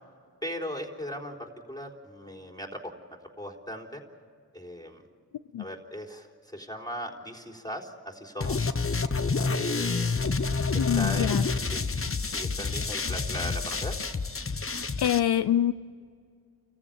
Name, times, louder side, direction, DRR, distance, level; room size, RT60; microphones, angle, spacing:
voice 1, 0.4-4.0 4.5-5.0 5.6-8.6 9.5-10.2 10.7-11.8 12.3-14.0, equal, 10° left, 3.9 m, -38 dB
sound 1, 8.4-15.2, left 4 dB, 35° left, 1.0 m, -28 dB
voice 2, 10.7-11.4 15.0-15.7, left 11 dB, 75° left, 0.6 m, -25 dB
29.5 x 15.0 x 8.9 m
cardioid pair, 50°, 40 cm